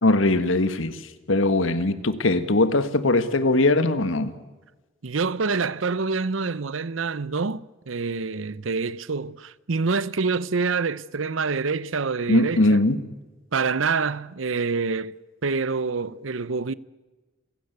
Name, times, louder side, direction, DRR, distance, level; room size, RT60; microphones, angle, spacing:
voice 1, 0.0-1.0 1.3-4.3 12.3-13.0, left 2 dB, 80° left, 1.6 m, -20 dB
voice 2, 5.0-12.8 13.5-15.2 15.4-16.7, right 4 dB, 80° right, 0.7 m, -26 dB
29.0 x 16.5 x 8.1 m
head